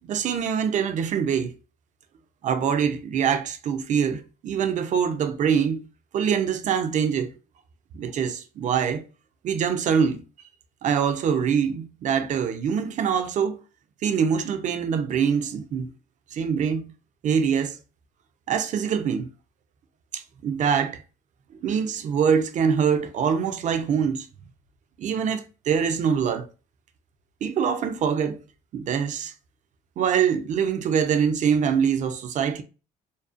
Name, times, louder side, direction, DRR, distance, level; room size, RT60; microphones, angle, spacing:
voice 1, 0.1-1.5 2.4-5.9 6.1-7.3 7.9-9.0 9.4-10.2 10.8-13.6 14.0-15.9 16.3-16.9 17.2-17.8 18.5-19.3 20.1-21.0 21.6-24.3 25.0-26.5 27.4-28.4 28.7-29.3 30.0-32.6, right 7 dB, 45° right, 0.4 m, -24 dB
2.5 x 2.0 x 2.4 m
cardioid pair, 110°, 17 cm